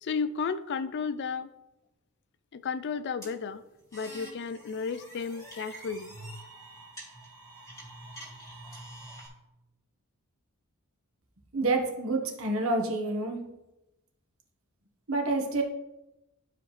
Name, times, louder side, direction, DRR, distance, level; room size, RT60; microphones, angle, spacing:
voice 1, 0.0-1.5 2.5-3.6 3.9-6.1, left 5 dB, 55° left, 14 dB, 0.4 m, -33 dB
sound 1, 3.2-9.3, right 1 dB, 15° left, 2.3 m, -46 dB
voice 2, 11.5-13.4 15.1-15.6, right 2 dB, 65° right, 2 dB, 1.4 m, -28 dB
11.5 x 5.0 x 3.2 m, 0.95 s
head